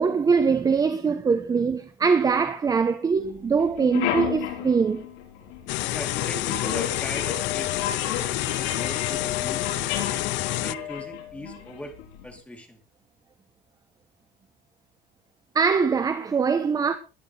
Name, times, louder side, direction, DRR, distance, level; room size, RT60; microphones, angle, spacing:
voice 1, 0.0-5.0 15.5-17.0, right 5 dB, 20° right, 0.9 m, -22 dB
sound 1, 3.2-3.3 3.6-12.2, left 10 dB, 90° left, 7.1 m, -32 dB
sound 2, 5.7-10.7, left 18 dB, 70° left, 0.7 m, -28 dB
voice 2, 5.9-10.1 10.6-12.0 12.2-12.8, equal, 5° left, 3.4 m, -39 dB
21.0 x 10.5 x 3.4 m
cardioid pair, 165°, 20 cm